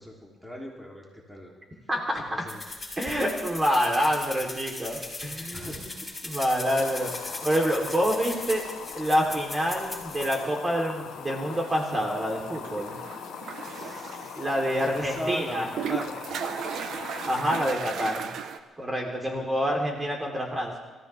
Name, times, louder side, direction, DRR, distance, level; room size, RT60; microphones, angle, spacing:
voice 1, 0.0-1.5 2.1-2.6 3.0-3.2 5.5-5.8 13.6-16.3 19.2-19.5, equal, ahead, -2 dB, 3.2 m, -39 dB
voice 2, 1.9-2.4 3.0-5.9 6.2-7.1 7.4-8.6 9.0-13.0 14.3-15.7 17.3-18.3 18.8-20.8, equal, 25° right, 0 dB, 3.5 m, -27 dB
sound 1, 2.5-10.4, left 2 dB, 15° left, 5.6 m, -39 dB
sound 2, 6.6-17.7, left 9 dB, 75° left, 0.8 m, -41 dB
sound 3, 11.1-18.6, right 7 dB, 70° right, 1.1 m, -37 dB
26.5 x 14.5 x 3.5 m, 1.3 s
cardioid pair, 90°, 0 cm